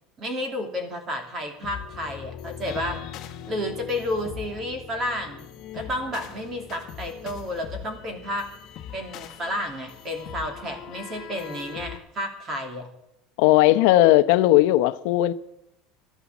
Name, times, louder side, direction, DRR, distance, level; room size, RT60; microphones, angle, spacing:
voice 1, 0.2-3.0 3.5-8.5 8.9-12.9, left 1 dB, 25° right, 2.8 m, -31 dB
sound 1, 1.6-12.0, left 10 dB, 40° left, 1.5 m, -40 dB
voice 2, 13.4-15.3, left 15 dB, 65° left, 0.8 m, -17 dB
13.0 x 12.5 x 7.3 m
cardioid pair, 165°, 0 cm